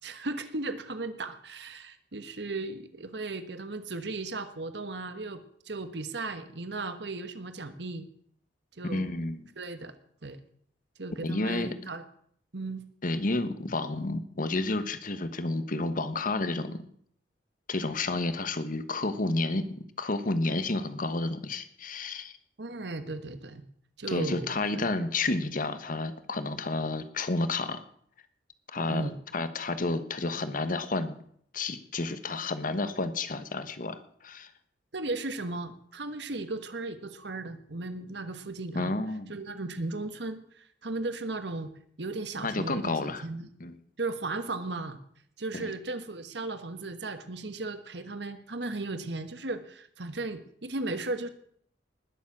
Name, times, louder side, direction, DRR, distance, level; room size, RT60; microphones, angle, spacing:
voice 1, 0.0-8.1 8.7-9.1 9.6-9.9 10.2-10.4 11.0-12.0 12.5-12.8 22.6-23.6 24.0-25.1 28.9-29.1 34.9-38.9 39.3-41.7 42.0-43.5 44.0-45.0 45.4-51.3, right 2 dB, 70° right, 10 dB, 1.4 m, -36 dB
voice 2, 8.8-9.5 11.2-11.8 13.0-16.8 17.7-22.3 24.1-27.8 28.7-31.1 31.5-34.5 38.7-39.3 42.4-43.3 43.6-43.8 45.5-45.7, left 2 dB, 50° left, 11 dB, 1.3 m, -31 dB
20.0 x 7.3 x 7.3 m, 0.64 s
head